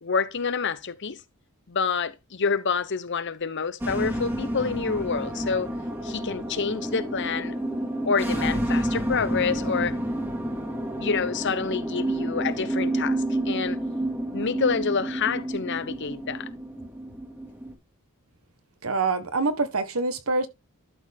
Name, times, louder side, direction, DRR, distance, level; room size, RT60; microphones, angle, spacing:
voice 1, 0.0-1.2 1.7-5.7 6.0-7.5 8.1-10.0 11.0-13.8 14.3-16.5, left 5 dB, 55° left, 0.8 m, -27 dB
sound 1, 3.8-17.7, right 1 dB, 10° right, 1.8 m, -29 dB
voice 2, 18.8-20.5, right 3 dB, 85° right, 1.3 m, -25 dB
12.0 x 4.4 x 3.5 m
head